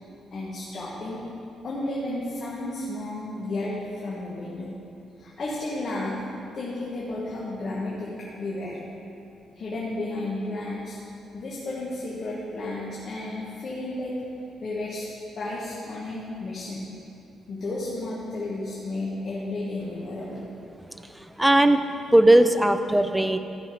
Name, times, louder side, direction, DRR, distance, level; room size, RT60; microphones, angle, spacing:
voice 1, 0.3-1.2 1.6-4.7 5.2-6.2 6.5-8.8 9.5-11.0 11.3-14.1 14.6-15.1 15.4-16.8 17.5-20.5, left 2 dB, 40° left, -6 dB, 1.2 m, -32 dB
voice 2, 20.9-23.4, right 1 dB, 5° right, 9 dB, 0.4 m, -19 dB
13.0 x 5.7 x 4.9 m, 2.8 s
cardioid pair, 165°, 0 cm